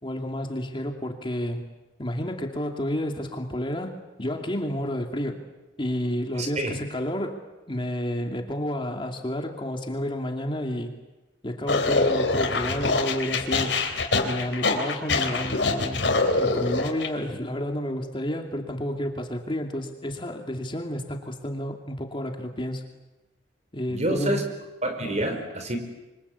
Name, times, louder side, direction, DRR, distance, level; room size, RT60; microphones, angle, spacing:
voice 1, 0.0-1.6 2.0-5.4 5.8-7.4 7.7-10.9 11.4-13.8 14.2-16.0 16.4-22.8 23.7-24.4, equal, 30° left, 3 dB, 2.6 m, -30 dB
voice 2, 6.4-6.7 23.9-24.4 24.8-25.8, right 1 dB, 40° right, 7 dB, 4.7 m, -27 dB
sound 1, 11.7-17.1, left 3 dB, 80° left, 3.7 m, -24 dB
28.0 x 24.5 x 8.5 m, 1.1 s
head